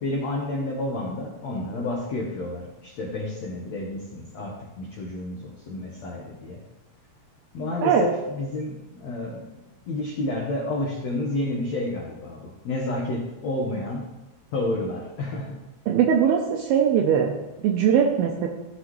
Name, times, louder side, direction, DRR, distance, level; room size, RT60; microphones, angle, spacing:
voice 1, 0.0-6.6 7.5-14.0 14.5-15.5, left 2 dB, 90° left, -2 dB, 1.5 m, -30 dB
voice 2, 15.9-17.3 17.6-18.5, right 8 dB, 80° right, 1 dB, 2.4 m, -20 dB
15.0 x 6.1 x 3.1 m, 1.0 s
omnidirectional pair, 5.0 m